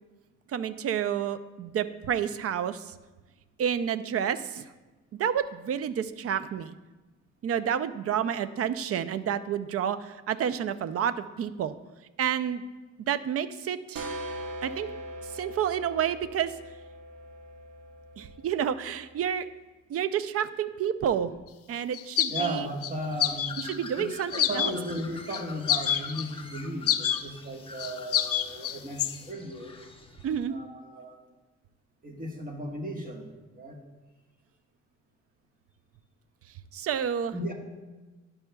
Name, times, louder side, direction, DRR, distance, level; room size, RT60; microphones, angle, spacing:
voice 1, 0.5-2.9 3.6-4.7 5.2-6.7 7.4-11.8 12.2-12.6 13.1-14.1 14.6-14.9 15.3-16.5 18.2-19.5 19.9-21.3 21.7-22.7 23.6-24.7 30.2-30.5 36.7-37.3, right 9 dB, 50° right, 13 dB, 0.5 m, -29 dB
sound 1, 14.0-19.4, right 1 dB, 80° right, 1.0 m, -41 dB
sound 2, 21.9-22.9 23.2-23.8 24.3-25.0 25.3-25.4 25.7-26.3 26.9-27.2 27.8-29.2, left 10 dB, 50° left, 0.4 m, -27 dB
voice 2, 22.3-23.6 24.0-24.1 24.3-29.8 30.5-31.2 32.0-33.8 37.3-37.5, right 1 dB, 30° right, 1 dB, 1.5 m, -36 dB
Bird, 23.0-30.4, left 4 dB, 20° left, 0.8 m, -46 dB
12.0 x 5.5 x 2.3 m, 1.2 s
cardioid pair, 90°, 30 cm